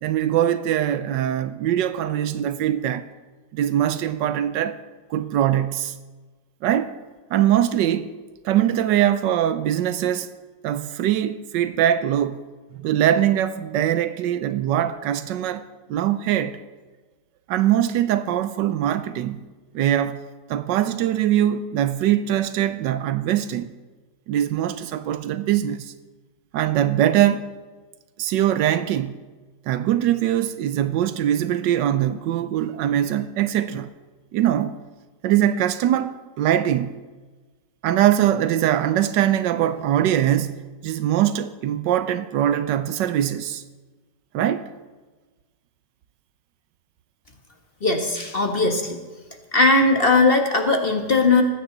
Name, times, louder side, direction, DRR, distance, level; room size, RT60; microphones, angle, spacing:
voice 1, 0.0-3.0 3.5-4.8 5.1-6.0 6.6-6.9 7.3-8.1 8.4-10.3 10.6-12.4 12.8-15.6 15.9-16.6 17.5-19.4 19.7-20.2 20.5-23.7 24.3-25.9 26.5-27.5 28.2-29.2 29.7-33.9 34.3-34.8 35.2-37.0 37.8-43.6 44.3-44.7, right 11 dB, 90° right, 1.3 m, -22 dB
voice 2, 47.8-49.0 49.5-51.4, left 3 dB, 35° left, 1.5 m, -18 dB
19.0 x 15.5 x 4.0 m
omnidirectional pair, 1.9 m